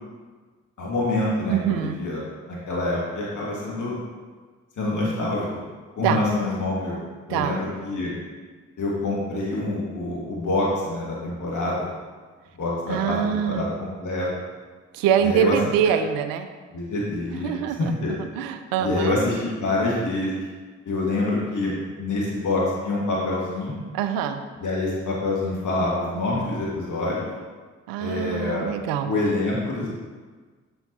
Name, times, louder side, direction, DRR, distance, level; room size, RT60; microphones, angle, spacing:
voice 1, 0.8-2.2 2.5-3.9 4.8-5.5 6.0-7.0 7.3-8.1 8.8-11.9 12.6-13.2 13.5-14.3 15.2-15.6 16.7-17.5 17.8-18.2 18.8-20.4 20.9-21.7 22.0-23.8 24.6-27.3 28.0-28.7 29.0-29.9, left 2 dB, 60° left, -5 dB, 1.8 m, -26 dB
voice 2, 1.5-2.0 6.0-6.2 7.3-7.6 12.9-13.6 14.9-16.5 17.4-17.9 18.2-19.2 23.9-24.4 27.9-29.1, right 9 dB, 80° right, 9 dB, 0.6 m, -24 dB
7.0 x 6.9 x 2.8 m, 1.4 s
hypercardioid pair, 40°, 34 cm